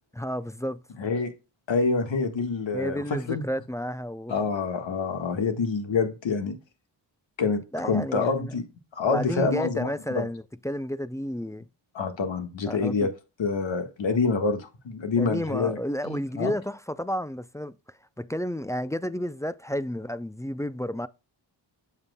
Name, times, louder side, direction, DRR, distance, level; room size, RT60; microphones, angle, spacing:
voice 1, 0.2-0.8 2.7-4.4 7.7-8.6 9.0-11.7 12.7-13.1 15.2-17.7 18.2-21.1, equal, 5° left, 0.3 m, -31 dB
voice 2, 1.0-1.3 1.7-3.4 4.3-6.6 7.4-8.6 8.9-10.3 11.9-13.1 13.4-15.8 16.0-16.5, left 4 dB, 70° left, 1.6 m, -27 dB
8.0 x 7.1 x 2.2 m
cardioid pair, 75°, 47 cm